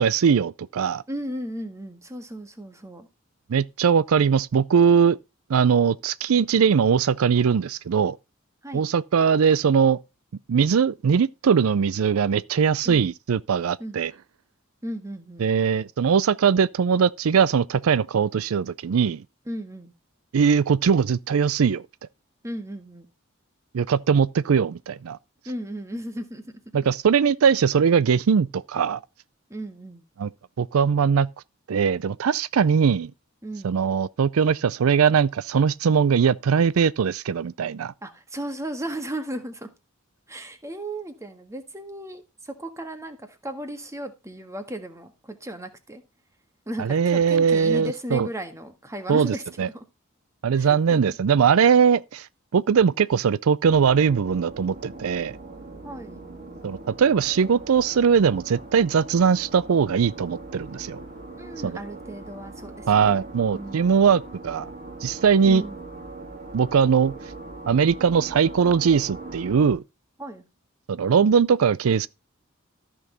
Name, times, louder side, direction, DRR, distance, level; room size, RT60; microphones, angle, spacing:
voice 1, 0.0-1.0 3.5-5.2 5.5-8.2 8.7-10.0 10.5-14.1 15.4-19.2 20.3-21.8 23.7-25.2 26.7-29.0 30.2-30.3 30.6-31.3 31.7-33.1 33.6-37.9 46.8-48.3 49.1-49.7 50.4-52.3 52.5-55.4 56.6-61.0 61.6-61.8 62.9-64.7 65.0-65.6 66.5-67.1 67.7-69.8 70.9-72.1, right 6 dB, 80° right, 0.4 m, -20 dB
voice 2, 1.1-3.1 8.6-8.9 12.8-13.1 13.8-14.0 14.8-15.5 19.4-19.9 22.4-23.1 25.4-26.6 29.5-30.0 33.4-33.8 38.0-39.7 40.3-46.0 46.7-49.8 50.6-51.0 55.8-56.2 61.4-63.3 63.5-64.0 65.4-65.8 70.2-70.5, right 1 dB, 15° right, 1.6 m, -35 dB
sound 1, 53.7-69.7, right 2 dB, 45° right, 3.0 m, -41 dB
13.5 x 6.2 x 3.9 m
head